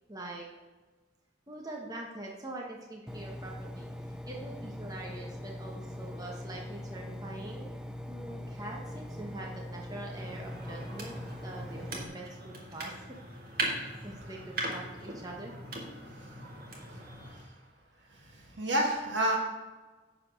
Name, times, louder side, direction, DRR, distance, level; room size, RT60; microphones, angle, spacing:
voice 1, 0.1-0.5 1.5-3.9 4.3-7.7 8.1-11.2 11.4-12.9 14.0-15.6, right 2 dB, 20° right, -1 dB, 1.1 m, -43 dB
Engine, 3.1-12.1, left 1 dB, 5° right, 0.4 m, -42 dB
sound 1, 10.1-17.5, right 2 dB, 55° right, 1.7 m, -40 dB
voice 2, 18.2-19.4, right 1 dB, 85° right, -1 dB, 2.0 m, -29 dB
9.6 x 4.2 x 6.5 m, 1.3 s
head